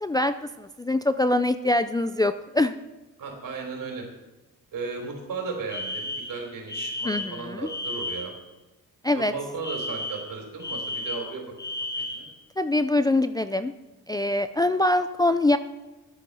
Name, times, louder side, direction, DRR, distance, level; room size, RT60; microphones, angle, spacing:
voice 1, 0.0-2.7 7.0-7.7 9.0-9.3 12.6-13.7 14.1-15.6, left 2 dB, 10° left, 10 dB, 0.3 m, -24 dB
voice 2, 3.2-4.1 4.7-8.3 9.1-11.5 12.0-12.3, right 4 dB, 70° right, 1 dB, 3.6 m, -35 dB
Alarm, 5.7-8.4 9.6-12.4, left 2 dB, 30° left, 1.3 m, -33 dB
10.5 x 8.4 x 5.5 m, 1.1 s
cardioid pair, 105°, 34 cm